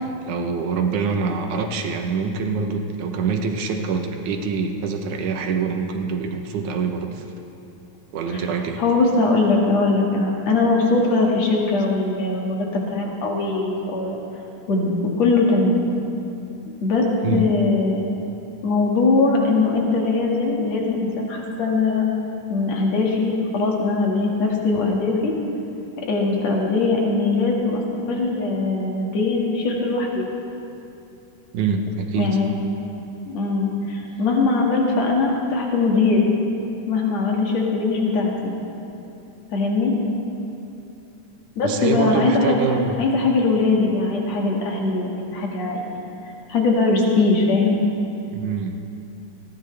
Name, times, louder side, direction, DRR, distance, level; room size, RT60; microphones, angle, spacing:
voice 1, 0.0-7.2 8.1-8.8 17.0-17.5 31.5-32.4 41.6-43.0 48.3-48.8, right 5 dB, 70° right, 4 dB, 2.3 m, -25 dB
voice 2, 8.8-14.2 14.7-15.8 16.8-17.1 17.3-18.0 18.6-22.1 22.5-25.3 26.1-27.8 28.1-30.3 32.1-32.5 33.3-36.3 36.9-38.5 39.5-39.9 41.6-45.9 46.5-47.8, left 3 dB, 55° left, -2 dB, 3.0 m, -21 dB
20.0 x 17.0 x 3.4 m, 2.7 s
omnidirectional pair, 4.0 m